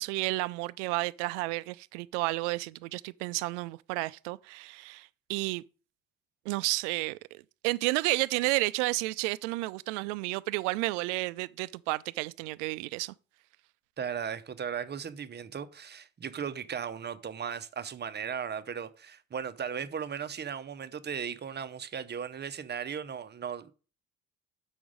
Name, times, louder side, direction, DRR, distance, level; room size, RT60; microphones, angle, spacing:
voice 1, 0.0-5.6 6.5-13.1, right 22 dB, 65° right, 0.5 m, -31 dB
voice 2, 14.0-23.7, right 7 dB, 25° right, 0.8 m, -37 dB
7.1 x 6.0 x 5.1 m
figure-of-eight pair, 45°, 39 cm